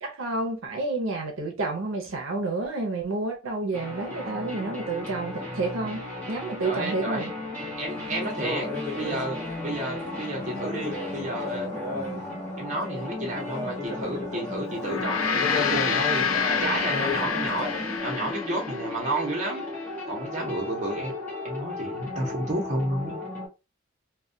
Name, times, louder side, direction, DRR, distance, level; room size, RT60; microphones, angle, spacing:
voice 1, 0.0-7.3, right 3 dB, 75° right, 0.6 m, -30 dB
sound 1, 3.7-23.5, left 2 dB, 10° left, 0.8 m, -36 dB
voice 2, 6.6-7.3 7.8-8.7 9.0-11.7 12.6-19.6 20.1-21.1 21.4-23.2, right 1 dB, 35° right, 0.8 m, -31 dB
sound 2, 7.9-18.0, left 3 dB, 35° left, 1.1 m, -36 dB
Gong, 14.7-19.4, left 6 dB, 75° left, 0.4 m, -28 dB
2.3 x 2.1 x 2.5 m
head